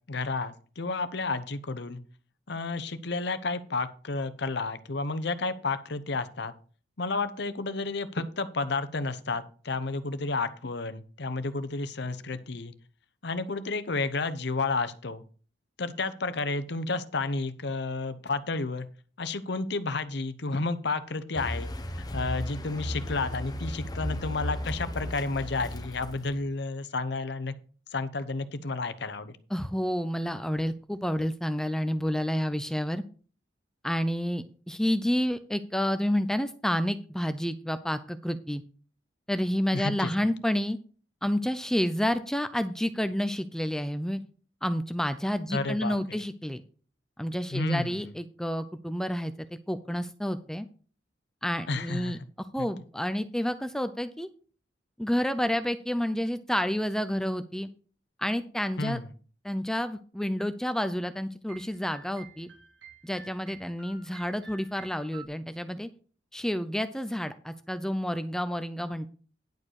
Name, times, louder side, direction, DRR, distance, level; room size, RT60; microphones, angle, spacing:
voice 1, 0.1-2.0 2.5-6.5 7.0-12.7 13.2-15.2 15.8-18.9 19.2-21.7 22.0-27.5 27.9-29.4 39.7-40.1 45.5-46.0 47.5-48.0 51.7-52.2 52.6-52.7 58.8-59.0, left 3 dB, 65° left, 12 dB, 0.9 m, -31 dB
Car, 21.4-26.5, left 1 dB, 20° left, 0.9 m, -35 dB
voice 2, 29.5-33.0 33.8-38.6 39.3-40.8 41.2-44.2 44.6-46.6 47.2-49.3 49.7-50.7 51.4-54.3 55.0-57.7 58.2-59.0 59.4-62.5 63.0-65.9 66.3-69.1, equal, 5° left, 11 dB, 0.4 m, -29 dB
sound 1, 61.5-65.3, right 4 dB, 85° right, 2.5 m, -50 dB
10.5 x 4.9 x 6.4 m, 0.40 s
head